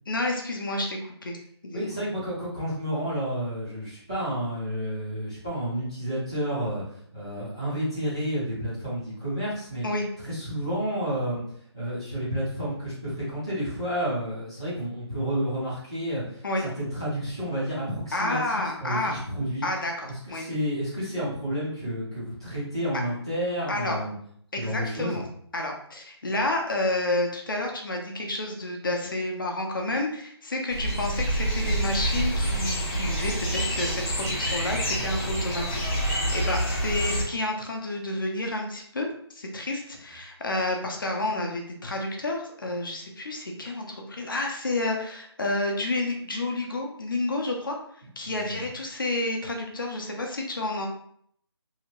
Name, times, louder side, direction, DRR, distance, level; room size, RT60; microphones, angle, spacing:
voice 1, 0.1-1.4 1.6-1.9 9.8-10.1 16.4-16.7 18.1-19.1 19.6-20.5 23.7-24.0 24.5-25.2 25.5-47.8 48.2-50.9, left 2 dB, 50° left, 1 dB, 0.6 m, -30 dB
voice 2, 1.7-9.8 10.2-11.4 11.7-19.7 20.0-24.2 24.5-25.2 48.2-48.7, equal, 10° right, -12 dB, 0.5 m, -30 dB
sound 1, 30.7-37.2, right 1 dB, 30° left, 0.9 m, -27 dB
2.8 x 2.5 x 2.8 m, 0.65 s
hypercardioid pair, 175°, 15 cm